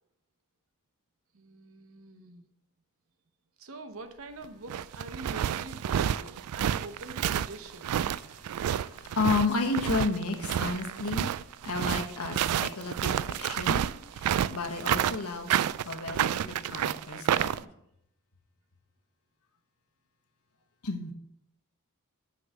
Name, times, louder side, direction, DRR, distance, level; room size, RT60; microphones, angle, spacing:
voice 1, 1.3-2.5 3.6-8.0, right 3 dB, 65° right, 8 dB, 0.9 m, -44 dB
sound 1, 4.4-17.6, right 10 dB, 90° right, 0.3 m, -29 dB
voice 2, 8.2-11.3 11.6-13.9 14.1-15.5 15.8-17.6 20.8-21.1, left 3 dB, 80° left, 4 dB, 1.2 m, -32 dB
6.4 x 5.7 x 6.5 m, 0.78 s
head